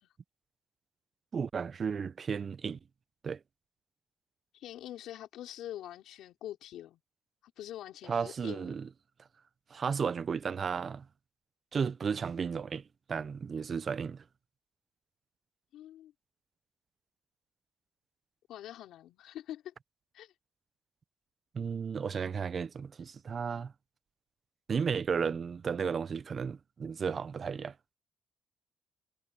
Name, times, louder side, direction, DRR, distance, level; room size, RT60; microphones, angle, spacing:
voice 1, 1.3-2.8 3.2-3.4 8.1-8.9 9.7-11.0 11.7-12.8 13.1-14.2 21.5-23.7 24.7-27.7, right 6 dB, 45° right, 0.8 m, -33 dB
voice 2, 4.5-7.0 7.4-8.8 15.7-16.1 18.5-19.7 20.1-20.3, left 12 dB, 80° left, 4.4 m, -45 dB
cardioid pair, 90°, 0 cm